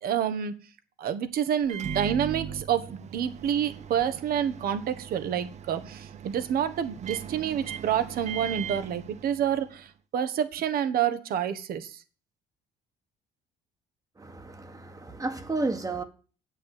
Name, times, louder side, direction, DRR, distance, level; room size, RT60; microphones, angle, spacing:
voice 1, 0.0-0.5 1.0-12.0, right 9 dB, 65° right, 1.3 m, -28 dB
Microwave oven, 1.6-9.8, right 8 dB, 40° right, 0.6 m, -39 dB
voice 2, 14.2-16.0, right 3 dB, 20° right, 1.4 m, -32 dB
8.3 x 6.3 x 8.3 m
cardioid pair, 110°, 17 cm